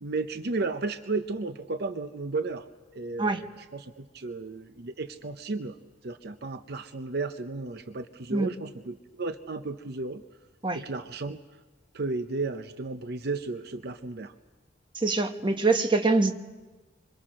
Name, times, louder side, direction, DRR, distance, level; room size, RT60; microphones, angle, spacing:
voice 1, 0.0-2.7 2.9-5.8 6.0-10.2 10.7-11.4 11.9-14.3, right 3 dB, 60° right, 10 dB, 0.7 m, -33 dB
voice 2, 14.9-16.3, right 3 dB, 25° right, 6 dB, 1.3 m, -24 dB
26.5 x 25.5 x 6.3 m, 1.3 s
head